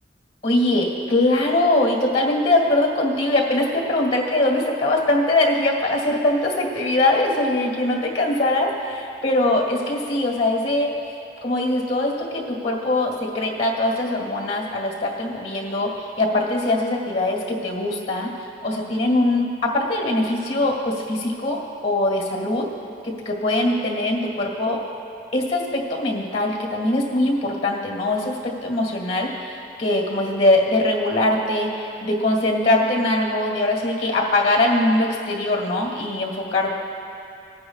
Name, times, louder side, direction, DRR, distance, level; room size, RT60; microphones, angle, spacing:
voice 1, 0.4-10.9 11.4-18.3 18.6-22.7 23.0-24.8 25.3-36.7, left 1 dB, 35° left, 0 dB, 1.8 m, -22 dB
19.5 x 9.5 x 2.4 m, 2.9 s
head